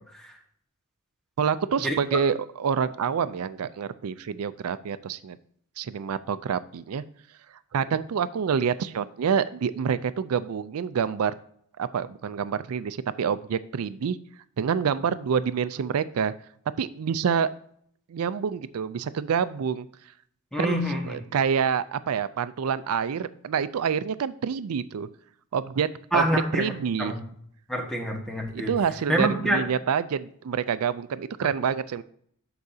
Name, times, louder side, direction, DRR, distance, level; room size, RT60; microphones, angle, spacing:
voice 1, 1.4-5.4 5.8-7.0 7.7-11.3 11.8-14.2 14.6-16.3 16.8-17.5 18.1-19.9 20.6-20.8 21.1-25.1 25.5-25.9 26.1-26.2 26.5-27.1 28.5-32.0, right 7 dB, 85° right, 14 dB, 0.4 m, -27 dB
voice 2, 20.5-21.2 26.1-26.7 27.0-27.2 27.7-28.7 29.1-29.6, right 1 dB, ahead, 0 dB, 1.4 m, -26 dB
13.0 x 4.8 x 2.7 m, 0.65 s
head